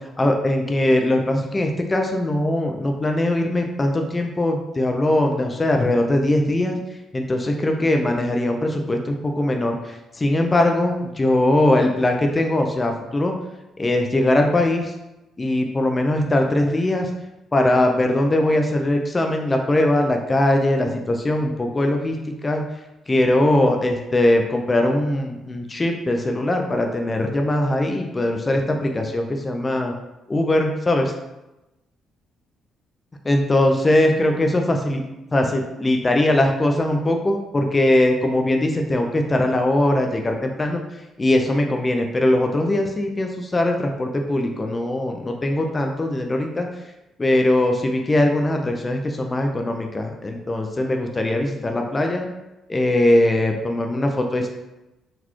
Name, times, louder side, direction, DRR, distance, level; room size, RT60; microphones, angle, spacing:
voice 1, 0.0-6.8 7.1-13.3 13.8-14.9 15.4-17.1 17.5-22.2 22.4-22.6 23.1-29.9 30.3-31.1 33.2-35.0 35.3-40.8 41.2-46.7 47.2-52.3 52.7-54.5, left 1 dB, 20° left, 3 dB, 0.4 m, -21 dB
4.0 x 2.2 x 3.0 m, 0.98 s
cardioid pair, 100°, 0 cm